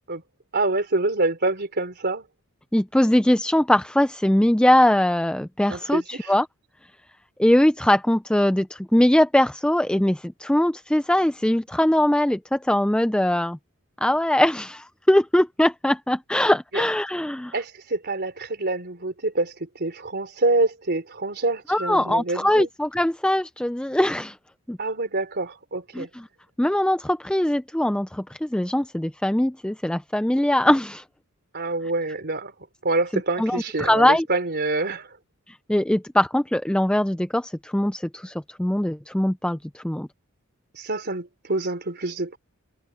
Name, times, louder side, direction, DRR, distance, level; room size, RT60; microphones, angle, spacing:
voice 1, 0.5-2.3 5.7-6.3 16.7-16.8 17.5-22.7 24.8-26.1 31.5-32.5 32.8-35.2 40.7-42.4, right 2 dB, 50° right, 3.7 m, -26 dB
voice 2, 2.7-6.5 7.4-13.6 14.0-17.5 21.7-24.4 24.7-24.8 25.9-26.3 26.6-31.0 33.1-34.3 35.5-40.1, left 1 dB, 5° left, 0.4 m, -21 dB
head